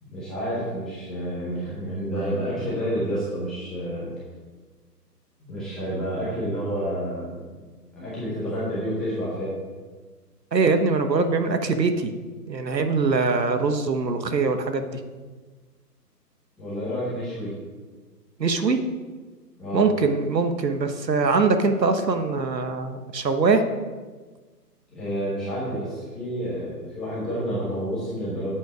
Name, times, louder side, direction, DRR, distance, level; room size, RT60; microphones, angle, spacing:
voice 1, 0.0-4.1 5.4-7.4 7.9-9.6 16.6-17.6 19.6-19.8 24.9-28.5, equal, ahead, -12 dB, 0.7 m, -29 dB
voice 2, 10.5-12.1 12.5-15.0 18.4-18.8 19.7-23.6, right 4 dB, 85° right, 7 dB, 1.3 m, -22 dB
9.2 x 8.1 x 5.0 m, 1.4 s
hypercardioid pair, 155°, 49 cm